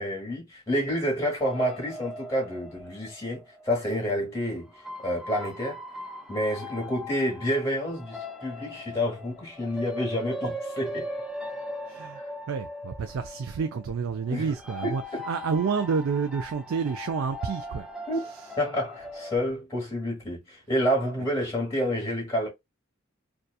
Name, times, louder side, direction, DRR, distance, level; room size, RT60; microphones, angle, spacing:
voice 1, 0.0-4.7 5.0-5.8 6.3-11.1 12.1-12.3 14.3-14.6 14.8-15.3 18.1-18.2 18.6-22.5, equal, 15° left, 1.2 m, -29 dB
sound 1, 1.4-3.9 4.7-19.4, left 1 dB, ahead, 0.5 m, -39 dB
voice 2, 12.5-17.9, right 5 dB, 75° right, 0.4 m, -29 dB
2.7 x 2.3 x 2.2 m
head